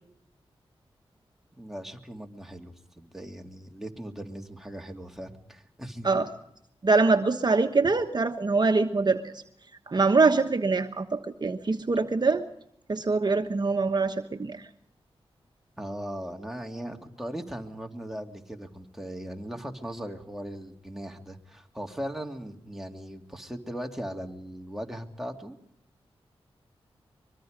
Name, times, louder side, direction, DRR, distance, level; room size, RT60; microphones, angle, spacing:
voice 1, 1.6-6.1 15.8-25.6, equal, 5° right, 2 dB, 2.8 m, -38 dB
voice 2, 6.8-9.3 9.9-12.4 12.9-14.6, right 3 dB, 45° right, 6 dB, 1.2 m, -24 dB
24.0 x 22.5 x 5.2 m, 0.76 s
cardioid pair, 60°, 10 cm